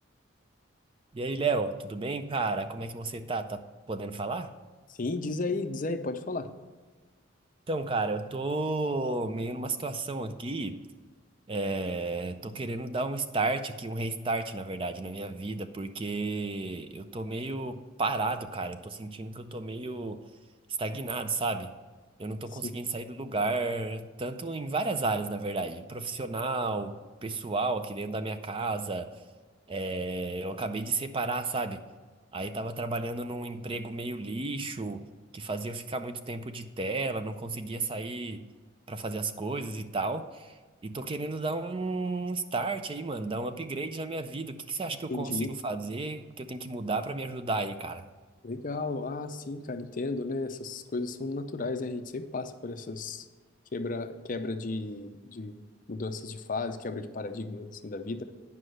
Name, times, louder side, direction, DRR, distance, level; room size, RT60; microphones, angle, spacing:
voice 1, 1.1-4.5 7.7-10.8 11.5-20.3 20.8-21.7 22.2-29.1 29.7-31.8 32.3-35.0 35.3-38.4 38.9-40.6 40.8-48.1, right 3 dB, 25° right, 9 dB, 0.4 m, -32 dB
voice 2, 4.9-6.5 22.6-22.8 45.1-45.5 48.4-53.3 53.7-58.2, left 3 dB, 45° left, 9 dB, 0.6 m, -34 dB
9.6 x 5.4 x 6.3 m, 1.4 s
head